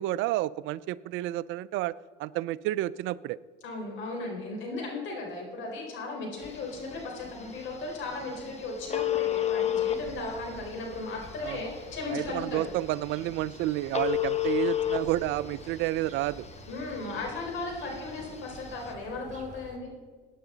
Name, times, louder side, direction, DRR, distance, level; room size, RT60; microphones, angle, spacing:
voice 1, 0.0-1.9 2.2-3.4 11.4-11.6 12.1-16.5, right 15 dB, 70° right, 19 dB, 0.4 m, -30 dB
voice 2, 3.6-12.7 16.7-19.9, left 3 dB, 65° left, 0 dB, 4.4 m, -36 dB
Telephone, 6.4-18.9, left 11 dB, 30° left, 1.3 m, -34 dB
sound 1, 9.9-19.8, right 4 dB, 35° right, 2.5 m, -50 dB
16.0 x 9.3 x 3.9 m, 1.5 s
supercardioid pair, 90°, 21 cm